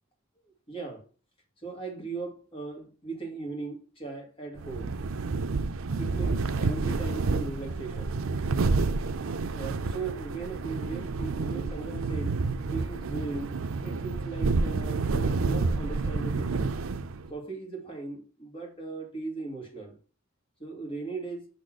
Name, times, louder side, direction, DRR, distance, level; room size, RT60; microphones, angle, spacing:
voice 1, 0.7-1.0 1.6-5.0 6.0-8.2 9.5-12.4 12.7-13.5 13.8-16.7 17.3-20.0 20.6-21.5, right 3 dB, 30° left, 2.4 m, -38 dB
sound 1, 4.6-17.3, right 3 dB, 85° right, 0.5 m, -29 dB
6.3 x 4.2 x 6.4 m
head